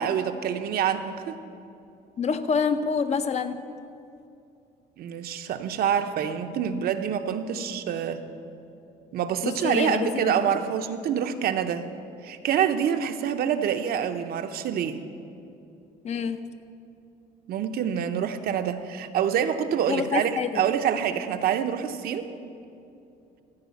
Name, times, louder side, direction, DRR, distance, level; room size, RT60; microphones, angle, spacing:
voice 1, 0.0-1.3 5.0-8.2 9.1-11.9 12.2-15.0 17.5-22.2, right 8 dB, 65° right, 8 dB, 0.7 m, -26 dB
voice 2, 2.2-3.7 9.4-10.4 16.0-16.4 19.9-20.6, left 5 dB, 40° left, 10 dB, 0.7 m, -27 dB
14.5 x 4.9 x 8.5 m, 2.7 s
cardioid pair, 110°, 17 cm